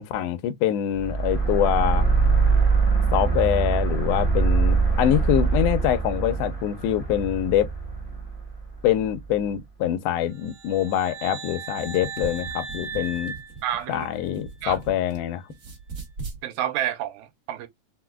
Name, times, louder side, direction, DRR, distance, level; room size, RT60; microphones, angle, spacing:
voice 1, 0.0-2.0 3.1-7.7 8.8-13.3 13.9-15.4, left 11 dB, 85° left, 1.5 m, -24 dB
sound 1, 1.0-9.3, right 4 dB, 45° left, 0.4 m, -23 dB
sound 2, 10.4-14.4, right 5 dB, 60° right, 1.4 m, -38 dB
sound 3, 11.7-15.2 15.5-16.4, right 4 dB, 45° right, 1.1 m, -39 dB
voice 2, 13.6-14.1 14.6-14.8 16.4-17.7, right 11 dB, 80° right, 2.0 m, -29 dB
4.7 x 2.1 x 2.2 m
omnidirectional pair, 3.3 m